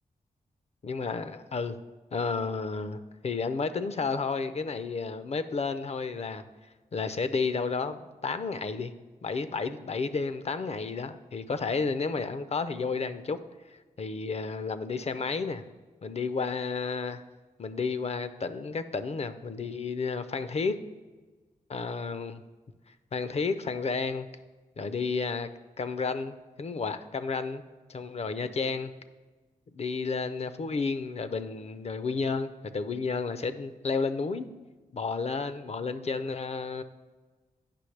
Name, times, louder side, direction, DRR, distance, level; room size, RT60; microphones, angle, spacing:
voice 1, 0.8-1.8 2.1-6.4 6.9-8.9 9.2-13.4 14.0-15.6 16.0-17.2 17.6-20.8 21.7-22.4 23.1-24.3 24.8-25.5 25.8-27.6 27.9-28.9 29.7-34.5 34.9-36.8, left 4 dB, 45° left, 11 dB, 0.5 m, -31 dB
8.4 x 5.7 x 3.3 m, 1.3 s
cardioid pair, 55°, 15 cm